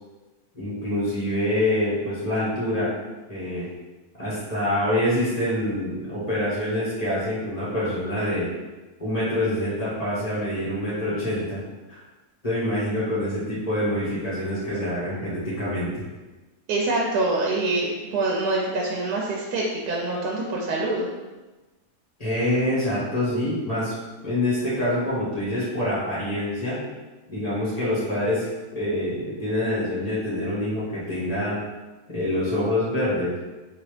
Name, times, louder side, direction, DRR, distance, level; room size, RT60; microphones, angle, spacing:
voice 1, 0.5-2.9 3.3-3.7 4.2-8.5 9.0-11.6 11.9-12.0 12.4-16.0 22.2-23.9 24.2-26.8 27.3-28.5 28.7-31.6 32.1-33.3, left 1 dB, 25° left, -10 dB, 1.4 m, -26 dB
voice 2, 16.7-21.1, right 2 dB, 80° right, -3 dB, 1.2 m, -25 dB
3.9 x 2.8 x 3.2 m, 1.2 s
omnidirectional pair, 1.6 m